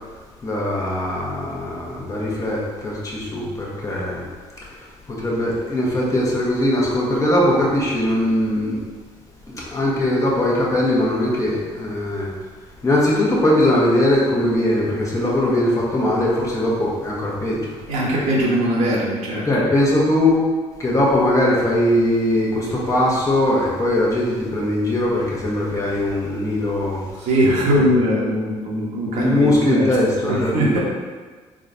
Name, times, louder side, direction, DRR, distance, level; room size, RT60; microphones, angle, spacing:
voice 1, 0.4-4.3 4.7-8.8 9.5-12.3 12.8-17.7 19.5-20.4 20.8-27.3 27.7-27.9 29.1-30.8, left 1 dB, 25° left, -4 dB, 1.0 m, -20 dB
voice 2, 17.9-19.5 27.2-29.9 30.2-30.8, equal, 70° right, -4 dB, 1.0 m, -20 dB
3.7 x 3.3 x 2.6 m, 1.4 s
supercardioid pair, 80°, 12 cm